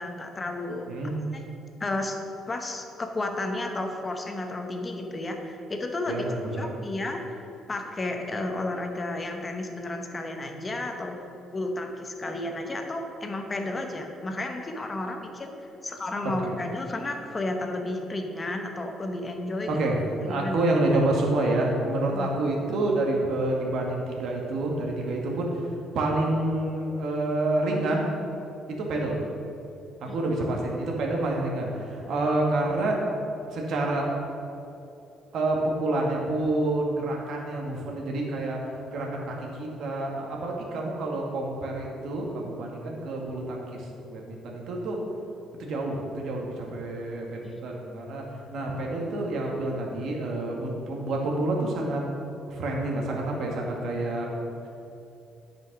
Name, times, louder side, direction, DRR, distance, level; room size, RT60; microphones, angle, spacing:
voice 1, 0.0-0.9 1.3-1.4 1.8-2.2 2.5-6.2 6.5-7.4 7.7-11.2 11.5-15.5 15.8-19.7 20.2-20.6 22.1-22.4 30.1-30.4 47.5-47.6, left 2 dB, 25° left, 3 dB, 1.1 m, -32 dB
voice 2, 6.1-6.7 16.2-16.5 19.7-20.0 20.3-25.6 25.9-28.1 28.7-29.2 30.0-33.0 33.5-34.1 35.3-45.0 45.6-48.2 48.5-52.0 52.5-54.3, right 2 dB, 65° right, -1 dB, 1.9 m, -28 dB
9.5 x 5.4 x 6.0 m, 2.9 s
cardioid pair, 110°, 0 cm